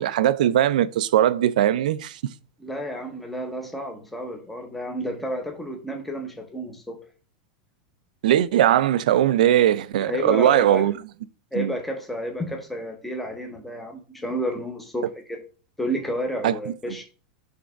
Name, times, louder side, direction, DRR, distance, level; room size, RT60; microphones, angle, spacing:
voice 1, 0.0-2.2 8.2-11.0 11.5-11.7 16.4-16.5, right 11 dB, 80° right, 0.4 m, -20 dB
voice 2, 2.6-7.0 10.0-10.9 11.5-15.4 15.8-17.0, equal, 5° left, 0.8 m, -31 dB
6.3 x 3.4 x 4.6 m
supercardioid pair, 175°, 4 cm